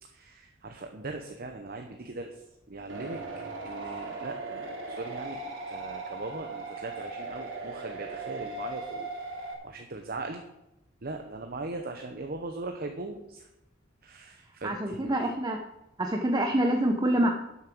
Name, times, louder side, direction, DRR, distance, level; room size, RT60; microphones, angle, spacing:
voice 1, 0.0-3.2 3.6-10.4 11.0-13.5 14.0-15.3, right 2 dB, 50° right, 4 dB, 0.9 m, -40 dB
sound 1, 2.9-9.5, right 3 dB, 75° right, 2.9 m, -38 dB
voice 2, 14.6-15.6 16.0-17.3, right 1 dB, 20° right, 4 dB, 0.9 m, -26 dB
12.0 x 7.2 x 6.1 m, 0.88 s
head